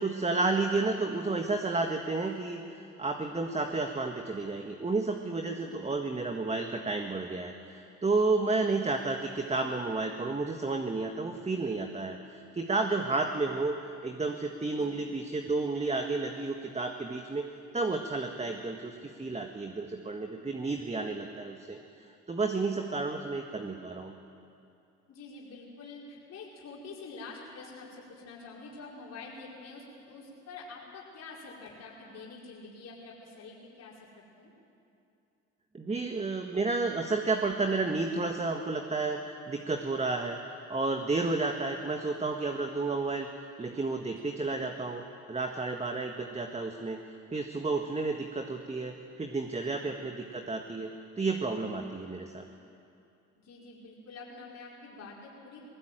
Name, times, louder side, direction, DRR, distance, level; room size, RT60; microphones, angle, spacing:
voice 1, 0.0-13.7 14.0-17.5 17.7-21.8 22.3-24.1 35.7-40.4 40.7-43.3 43.6-45.0 45.3-47.0 47.3-52.5, right 3 dB, 20° right, 4 dB, 1.8 m, -31 dB
voice 2, 5.5-6.0 14.7-15.0 25.1-34.5 44.1-44.3 49.6-50.0 53.4-55.6, left 3 dB, 55° left, -4 dB, 5.0 m, -47 dB
20.0 x 19.5 x 9.2 m, 2.6 s
supercardioid pair, 70°, 30 cm